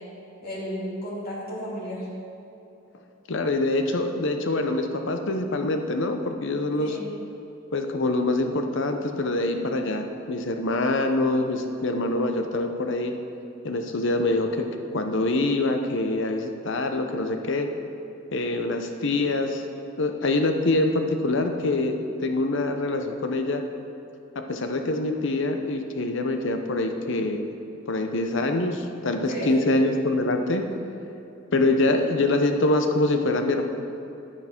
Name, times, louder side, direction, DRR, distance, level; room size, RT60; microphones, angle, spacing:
voice 1, 0.4-2.1 6.8-7.1 29.1-29.6, equal, 50° left, -7 dB, 2.6 m, -33 dB
voice 2, 3.3-6.9 7.7-13.1 13.6-14.7 14.9-17.7 18.3-19.6 20.0-22.0 22.2-23.7 24.4-27.5 27.9-30.7 31.5-33.6, left 2 dB, 65° left, 5 dB, 0.9 m, -25 dB
10.5 x 9.1 x 4.5 m, 2.9 s
head